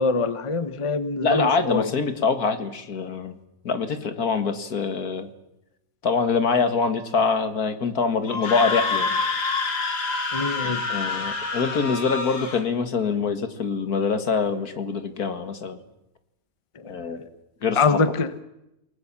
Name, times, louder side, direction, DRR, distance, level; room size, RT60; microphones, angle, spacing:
voice 1, 0.0-1.9 10.3-10.8 16.7-16.9 17.7-18.3, left 4 dB, 25° left, 12 dB, 1.0 m, -24 dB
voice 2, 1.2-3.4 3.6-5.3 6.0-9.2 10.9-15.8 16.9-17.2 17.6-18.0, left 5 dB, 70° left, 10 dB, 2.2 m, -24 dB
Screaming, 8.3-12.6, left 4 dB, 90° left, 3.2 m, -27 dB
29.0 x 19.0 x 7.4 m, 0.86 s
omnidirectional pair, 1.7 m